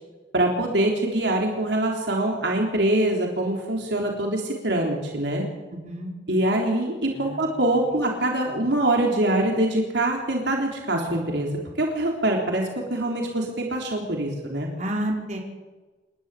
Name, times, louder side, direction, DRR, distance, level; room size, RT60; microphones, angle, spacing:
voice 1, 0.3-5.4 6.3-11.5 11.8-14.7, right 1 dB, 70° right, 0 dB, 3.6 m, -24 dB
voice 2, 5.7-6.1 7.1-7.4 14.8-15.4, right 1 dB, 40° right, 0 dB, 4.4 m, -30 dB
28.0 x 12.0 x 8.3 m, 1.2 s
head